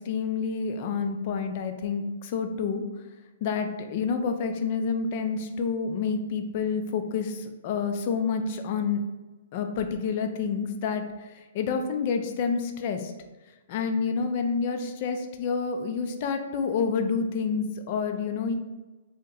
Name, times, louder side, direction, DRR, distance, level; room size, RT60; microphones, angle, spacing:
voice 1, 0.0-2.8 3.4-9.0 9.5-13.1 13.7-18.5, left 5 dB, 45° left, 6 dB, 0.4 m, -28 dB
2.7 x 2.1 x 3.8 m, 1.2 s
hypercardioid pair, 140°, 0 cm